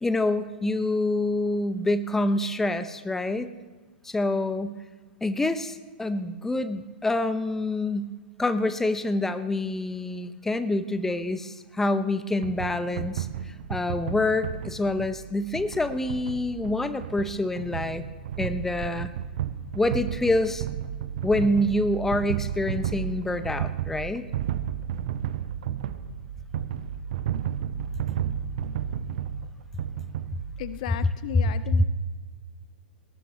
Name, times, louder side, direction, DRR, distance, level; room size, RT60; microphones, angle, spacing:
voice 1, 0.0-3.5 4.0-4.8 5.2-8.1 8.4-13.3 13.7-18.0 18.4-19.1 19.7-20.6 21.2-24.2, left 2 dB, 5° left, 12 dB, 0.7 m, -26 dB
sound 1, 12.4-30.8, right 9 dB, 50° right, 0.9 m, -33 dB
voice 2, 30.6-31.8, left 14 dB, 45° left, 15 dB, 0.5 m, -35 dB
20.5 x 19.0 x 3.2 m, 1.4 s
figure-of-eight pair, 110°, 6 cm